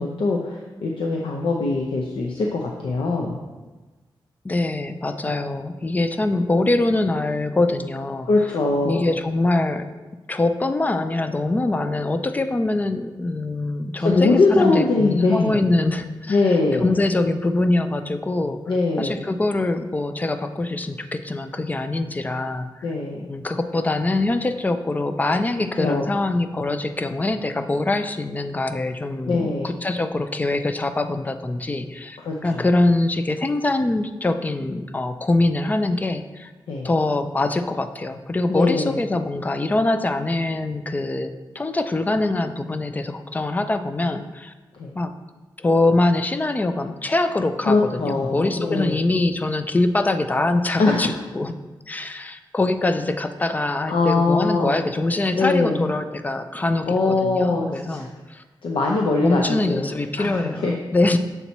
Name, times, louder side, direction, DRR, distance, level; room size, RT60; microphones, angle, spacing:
voice 1, 0.0-3.4 8.2-9.0 14.0-15.6 16.3-16.9 18.7-19.2 22.8-23.3 25.8-26.1 29.3-29.8 32.2-32.6 36.7-36.9 38.5-39.0 44.7-44.9 47.7-49.0 50.8-51.2 53.9-54.8 55.3-55.8 56.9-58.1 58.6-59.9 60.2-60.7, left 3 dB, 85° left, 0 dB, 0.6 m, -22 dB
voice 2, 4.4-8.3 8.8-9.9 10.3-16.4 16.8-18.6 19.0-22.8 23.3-36.5 36.8-44.5 45.0-45.1 45.6-51.5 51.9-58.4 59.2-61.2, left 2 dB, 20° left, 9 dB, 0.3 m, -23 dB
6.8 x 4.4 x 4.1 m, 1.2 s
wide cardioid pair, 155°, 9 cm